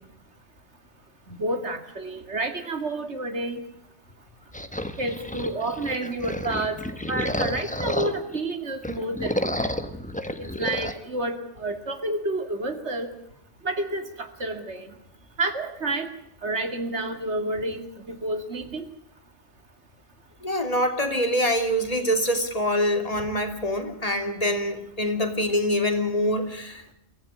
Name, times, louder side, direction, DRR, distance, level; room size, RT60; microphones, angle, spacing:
voice 1, 1.3-3.6 5.0-6.8 7.1-9.7 10.4-13.1 13.6-14.9 15.4-16.1 16.4-18.8, right 2 dB, 65° right, 7 dB, 2.8 m, -30 dB
sound 1, 4.5-8.4 8.8-11.0, left 1 dB, 5° left, 1.3 m, -30 dB
voice 2, 20.4-26.9, equal, 30° left, 6 dB, 2.9 m, -25 dB
24.0 x 15.5 x 9.9 m, 0.74 s
omnidirectional pair, 1.2 m